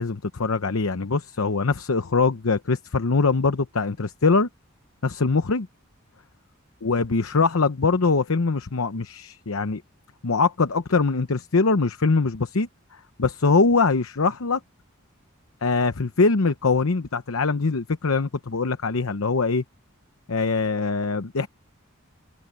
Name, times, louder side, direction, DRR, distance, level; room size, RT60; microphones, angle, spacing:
voice 1, 0.0-4.5 5.0-5.7 6.8-9.8 10.2-14.6 15.6-19.6 20.3-21.5, left 4 dB, 75° left, 0.9 m, -22 dB
head